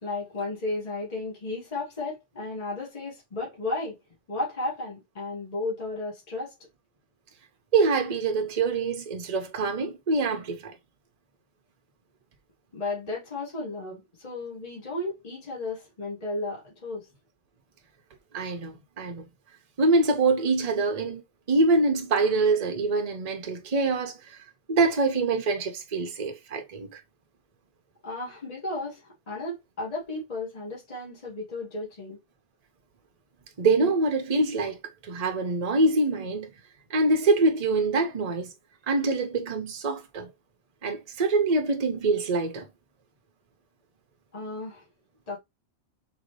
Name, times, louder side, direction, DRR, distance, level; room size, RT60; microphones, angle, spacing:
voice 1, 0.0-4.0 4.3-6.5 12.7-17.1 28.0-32.2 44.3-44.8 45.3-45.4, left 2 dB, 35° left, 1.5 m, -34 dB
voice 2, 7.7-10.7 18.3-19.3 19.8-21.2 21.5-24.4 24.7-27.0 33.6-36.5 36.9-38.5 38.9-40.3 40.8-42.7, right 3 dB, 40° right, 0.8 m, -25 dB
3.9 x 2.9 x 3.1 m
omnidirectional pair, 1.2 m